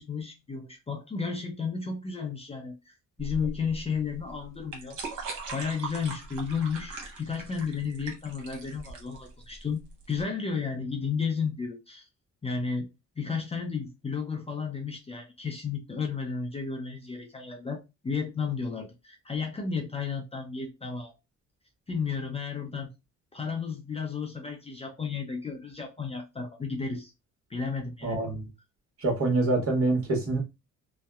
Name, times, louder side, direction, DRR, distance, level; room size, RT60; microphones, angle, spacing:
voice 1, 0.0-9.8 10.1-12.1 12.4-12.9 13.2-21.1 21.9-22.9 23.3-27.1 27.5-28.3, left 5 dB, 20° left, 0.5 m, -33 dB
sound 1, 3.2-10.2, right 3 dB, 80° right, 1.0 m, -40 dB
voice 2, 28.0-28.5 29.0-30.4, right 2 dB, 50° right, 1.2 m, -26 dB
2.7 x 2.0 x 2.3 m
cardioid pair, 90°, 30 cm